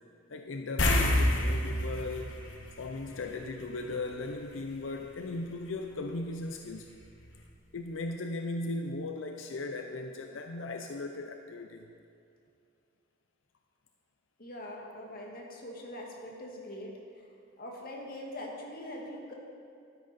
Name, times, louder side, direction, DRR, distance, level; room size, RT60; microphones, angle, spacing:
voice 1, 0.3-2.4 2.8-6.9 7.7-11.8, left 2 dB, 90° left, 4 dB, 0.6 m, -37 dB
sound 1, 0.8-3.6 3.9-4.1 6.9-7.0 7.4-7.5, left 1 dB, 70° left, 1.2 m, -28 dB
voice 2, 14.4-17.3 17.6-19.3, left 1 dB, 50° left, -1 dB, 1.8 m, -43 dB
12.5 x 10.0 x 4.2 m, 2.6 s
head